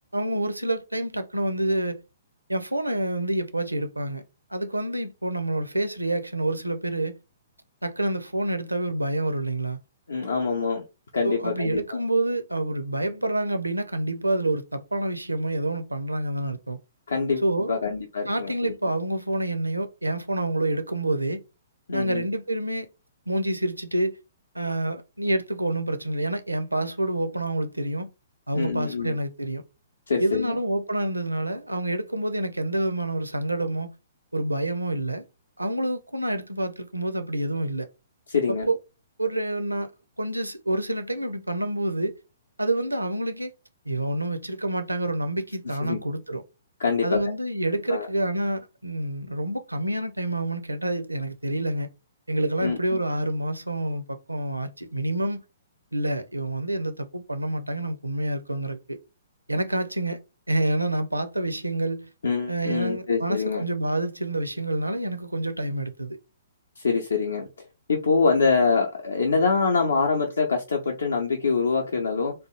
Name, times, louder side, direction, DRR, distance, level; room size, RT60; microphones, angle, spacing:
voice 1, 0.1-2.0 2.5-4.2 4.5-7.2 7.8-9.8 11.2-16.8 17.4-17.7 18.3-21.4 21.9-22.9 23.3-24.2 24.5-28.1 28.5-29.6 30.2-33.9 34.3-35.2 35.6-37.9 38.5-38.8 39.2-39.9 40.2-42.1 42.6-43.5 43.9-46.4 47.0-51.9 52.3-55.4 55.9-59.0 59.5-60.2 60.5-62.1 62.5-66.2, right 1 dB, 85° right, 0.5 m, -27 dB
voice 2, 10.1-10.8 11.1-11.8 17.1-17.4 17.7-18.7 21.9-22.2 28.5-29.2 30.1-30.6 38.3-38.7 45.6-46.0 46.8-47.2 47.9-48.1 52.6-52.8 62.2-63.6 66.8-67.5 67.9-72.3, left 4 dB, 70° left, 0.6 m, -24 dB
3.4 x 2.4 x 2.9 m
figure-of-eight pair, 120°, 0 cm